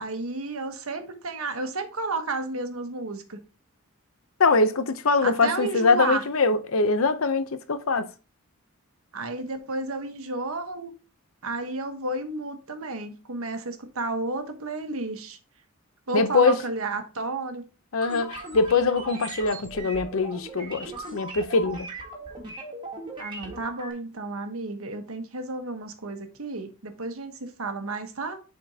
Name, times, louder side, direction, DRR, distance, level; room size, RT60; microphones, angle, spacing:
voice 1, 0.0-3.4 5.2-6.2 9.1-10.9 11.4-15.4 16.1-17.6 23.2-28.4, right 3 dB, 75° right, 1.2 m, -32 dB
voice 2, 4.4-8.1 16.1-16.6 17.9-21.9, left 4 dB, 70° left, 0.7 m, -23 dB
sound 1, 18.0-23.9, right 2 dB, 20° right, 1.7 m, -39 dB
10.0 x 4.3 x 2.8 m
head